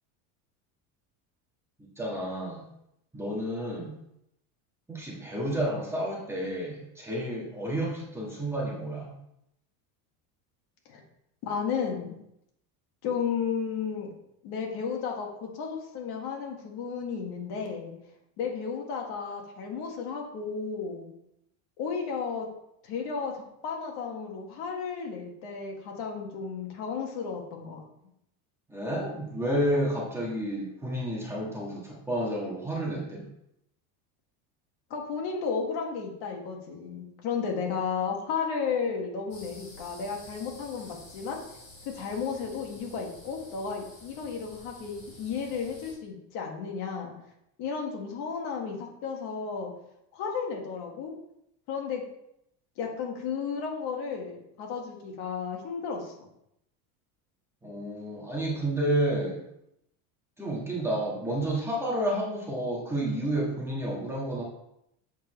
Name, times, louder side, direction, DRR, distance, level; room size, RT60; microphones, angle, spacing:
voice 1, 2.0-2.6 3.1-3.9 4.9-9.1 28.7-33.2 57.6-59.4 60.4-64.4, right 1 dB, 5° right, -4 dB, 1.6 m, -30 dB
voice 2, 11.4-12.2 13.0-14.1 14.4-17.9 18.4-21.1 21.8-22.5 22.8-27.8 34.9-41.4 41.8-47.1 47.6-49.7 50.1-51.1 51.7-52.0 52.8-56.3, left 6 dB, 55° left, 1 dB, 1.9 m, -33 dB
sound 1, 39.3-45.9, left 2 dB, 30° left, 3.0 m, -50 dB
8.0 x 6.9 x 3.2 m, 0.79 s
cardioid pair, 155°, 45 cm